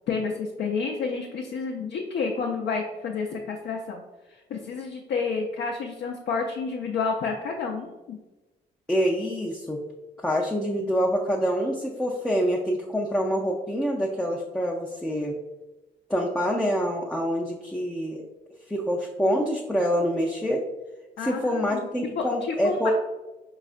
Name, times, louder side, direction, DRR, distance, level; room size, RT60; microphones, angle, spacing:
voice 1, 0.1-4.0 4.3-8.2 21.2-21.9 22.2-22.9, left 4 dB, 60° left, 0 dB, 0.5 m, -30 dB
voice 2, 8.9-9.8 10.2-15.4 16.1-18.2 18.7-20.6 21.2-22.9, equal, 5° left, -1 dB, 0.4 m, -26 dB
4.7 x 2.4 x 2.4 m, 1.1 s
hypercardioid pair, 45°, 20 cm